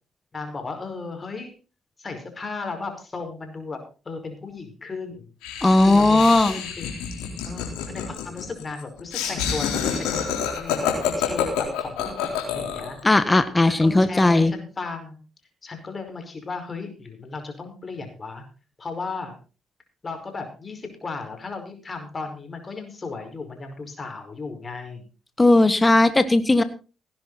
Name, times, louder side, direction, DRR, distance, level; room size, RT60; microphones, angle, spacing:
voice 1, 0.3-1.5 2.0-5.3 5.8-6.9 7.5-13.0 13.6-15.2 15.6-18.4 18.8-19.4 20.0-25.0, left 4 dB, 35° left, 5 dB, 5.2 m, -35 dB
Laughter, 5.4-13.0, left 8 dB, 80° left, 3.8 m, -28 dB
voice 2, 5.6-6.6 13.0-14.5 25.4-26.6, left 2 dB, 20° left, 12 dB, 1.5 m, -17 dB
18.0 x 10.5 x 4.1 m, 0.33 s
hypercardioid pair, 50°, 0 cm